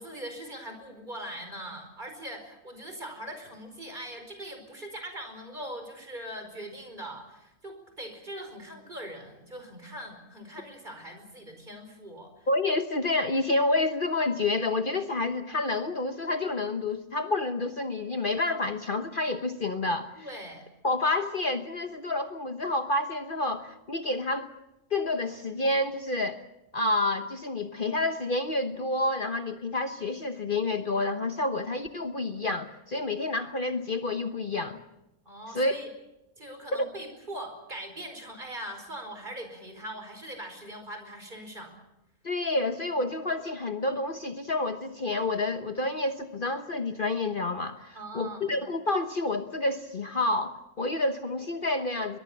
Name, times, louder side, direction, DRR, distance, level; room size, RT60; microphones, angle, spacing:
voice 1, 0.0-12.5 20.2-20.7 35.3-35.9 36.4-41.7 47.9-48.5, right 1 dB, 35° right, 6 dB, 5.1 m, -41 dB
voice 2, 12.5-20.3 20.8-24.5 24.9-26.4 26.7-34.8 35.5-35.8 36.7-36.9 42.2-52.2, left 2 dB, 45° left, 7 dB, 1.2 m, -29 dB
23.0 x 22.0 x 7.3 m, 0.90 s
omnidirectional pair, 1.3 m